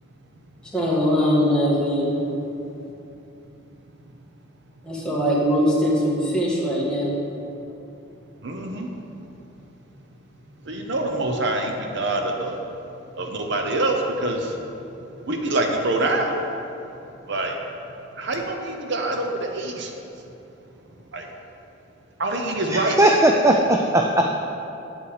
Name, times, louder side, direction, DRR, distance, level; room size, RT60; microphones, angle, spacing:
voice 1, 0.7-2.2 4.8-7.1, equal, 5° left, -6 dB, 1.7 m, -21 dB
voice 2, 8.4-8.9 10.6-12.6 13.1-14.6 15.2-16.4 17.3-17.6 18.2-19.9 21.1-21.3 22.2-23.0, right 2 dB, 60° right, 3 dB, 0.8 m, -25 dB
voice 3, 22.7-24.2, right 1 dB, 15° right, 1 dB, 0.4 m, -18 dB
8.5 x 7.9 x 4.8 m, 2.9 s
head